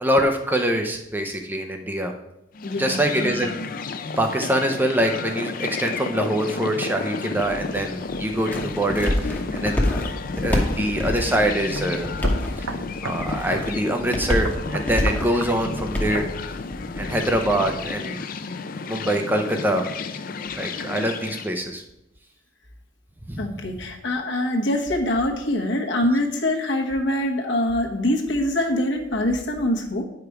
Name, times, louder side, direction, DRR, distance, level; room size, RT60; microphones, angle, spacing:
voice 1, 0.0-2.1 2.8-3.5 4.2-9.9 10.4-12.1 12.6-12.7 13.0-16.3 17.0-18.2 18.9-19.8 20.6-21.8 23.3-23.4, right 1 dB, 10° right, 4 dB, 0.5 m, -24 dB
sound 1, 2.5-21.5, left 4 dB, 45° left, 0.4 m, -32 dB
voice 2, 2.6-3.3 20.7-20.9 23.4-30.0, left 1 dB, 65° left, 1 dB, 1.1 m, -24 dB
sound 2, 7.4-17.9, left 1 dB, 10° left, 0.9 m, -28 dB
sound 3, 11.1-11.2 11.8-11.9 12.2-13.2 13.5-13.7 14.4-15.6 16.1-16.3, right 4 dB, 90° right, 0.7 m, -33 dB
9.2 x 5.0 x 4.7 m, 0.88 s
head